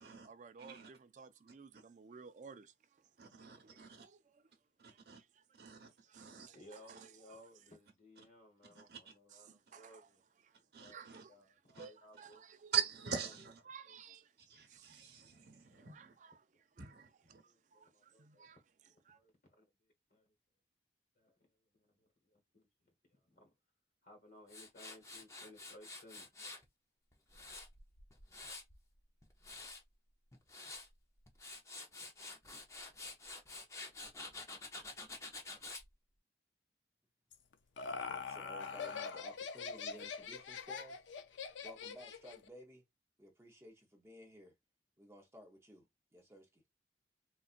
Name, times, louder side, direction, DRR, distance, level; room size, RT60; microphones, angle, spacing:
voice 1, 0.0-3.1 3.6-4.4 4.8-5.7 6.0-7.4 8.8-8.9 9.3-10.1 10.4-11.4 11.8-12.7 13.7-16.4 17.4-18.6 19.1-19.2, right 5 dB, 40° right, 0.4 m, -57 dB
voice 2, 0.6-0.9 1.7-1.8 3.2-4.1 4.8-5.2 5.5-6.5 6.9-7.0 8.6-9.1 10.7-11.2 11.7-11.9 12.7-13.6 14.4-16.2 16.8-17.4, right 8 dB, 60° right, 1.1 m, -43 dB
voice 3, 6.5-10.2 10.8-11.0 11.3-12.4 13.8-14.0 14.9-15.1 17.4-18.6 19.1-20.3 21.2-21.5 21.7-23.5 24.0-26.3, left 1 dB, 55° left, 1.1 m, -60 dB
Tools, 24.5-26.6 27.1-28.8 29.2-29.8 30.3-30.9 31.3-35.9, left 3 dB, 15° left, 0.7 m, -49 dB
Laughter, 37.3-42.5, left 5 dB, 90° left, 0.5 m, -43 dB
voice 4, 37.9-41.0 41.6-42.8 43.2-44.5 45.0-45.9 46.1-46.6, equal, 15° right, 0.8 m, -56 dB
4.0 x 2.4 x 2.4 m
head